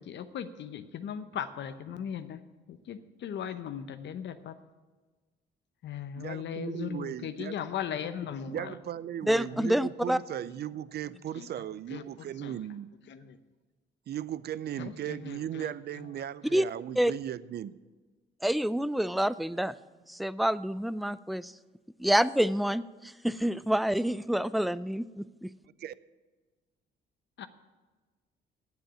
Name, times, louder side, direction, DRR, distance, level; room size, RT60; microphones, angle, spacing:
voice 1, 0.0-2.4 2.7-4.5 5.8-8.7 9.5-9.8 11.4-11.5 11.9-12.6 13.1-13.4 14.8-15.7 16.5-16.6 27.4-27.5, left 8 dB, 65° left, 11 dB, 0.8 m, -38 dB
voice 2, 6.1-7.6 8.5-12.9 14.1-17.8 25.8-25.9, right 11 dB, 55° right, 18 dB, 0.5 m, -37 dB
voice 3, 9.3-10.2 16.5-16.6 17.0-17.1 18.4-19.7 20.1-21.5 22.0-25.5, equal, ahead, 17 dB, 0.3 m, -27 dB
9.2 x 7.6 x 8.8 m, 1.3 s
cardioid pair, 90°, 20 cm